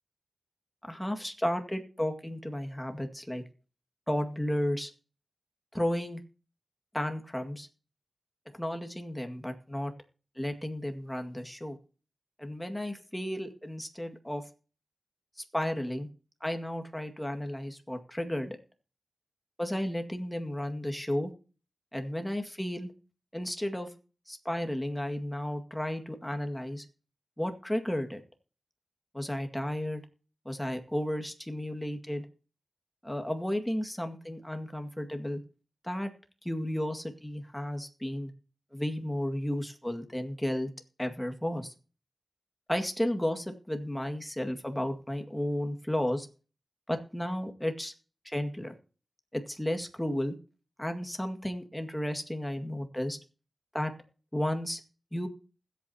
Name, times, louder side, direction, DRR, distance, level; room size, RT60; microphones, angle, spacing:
voice 1, 0.8-3.4 4.1-4.9 5.7-6.2 6.9-7.7 8.6-9.9 10.4-11.8 12.4-14.4 15.4-16.1 16.4-18.6 19.6-21.3 21.9-22.9 23.3-23.9 24.3-26.9 27.4-28.2 29.1-30.0 30.5-32.3 33.0-35.4 35.8-36.1 36.4-38.3 38.7-40.7 41.0-41.7 42.7-46.3 46.9-47.9 48.2-48.7 49.3-50.4 50.8-53.2 53.7-53.9 54.3-54.8 55.1-55.3, left 1 dB, 10° left, 5 dB, 2.0 m, -33 dB
20.5 x 8.4 x 2.9 m, 0.37 s
cardioid pair, 50°, 0 cm